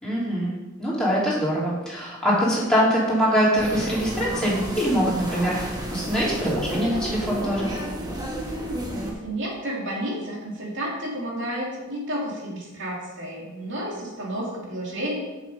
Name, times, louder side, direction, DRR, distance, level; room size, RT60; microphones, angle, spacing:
voice 1, 0.0-7.7, equal, 5° left, -8 dB, 3.3 m, -23 dB
sound 1, 3.5-9.1, equal, 20° right, 1.5 m, -31 dB
voice 2, 9.0-15.2, right 1 dB, 60° right, -2 dB, 2.6 m, -31 dB
7.4 x 7.2 x 5.4 m, 1.1 s
head